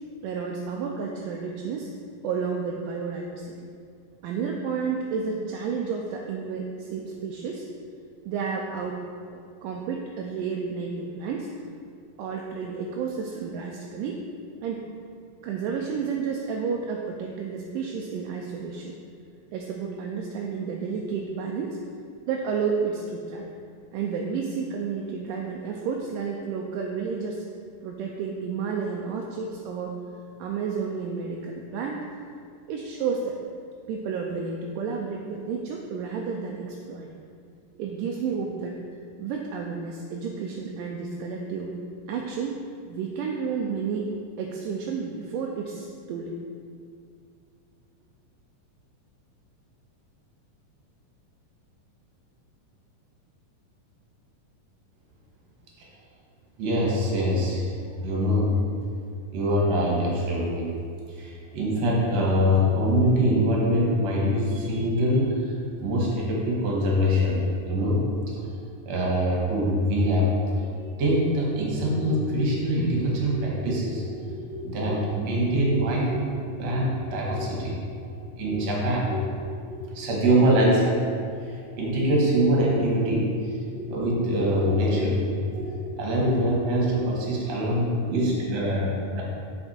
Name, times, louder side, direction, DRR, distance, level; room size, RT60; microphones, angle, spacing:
voice 1, 0.2-1.9 2.2-3.6 4.2-7.7 8.3-9.0 9.3-11.5 12.2-14.2 14.6-14.9 15.4-18.9 19.5-21.8 22.3-23.5 23.9-27.4 27.8-30.0 30.4-32.0 32.7-33.4 33.9-37.1 37.8-38.8 39.2-41.8 42.1-44.1 44.4-46.4, right 5 dB, 80° right, 0 dB, 2.1 m, -31 dB
voice 2, 56.6-57.6 58.0-58.5 59.3-60.7 61.1-65.5 65.8-68.0 68.9-79.2 79.7-81.0 81.4-89.2, equal, 55° right, -3 dB, 2.5 m, -24 dB
7.9 x 5.8 x 4.3 m, 2.3 s
omnidirectional pair, 4.1 m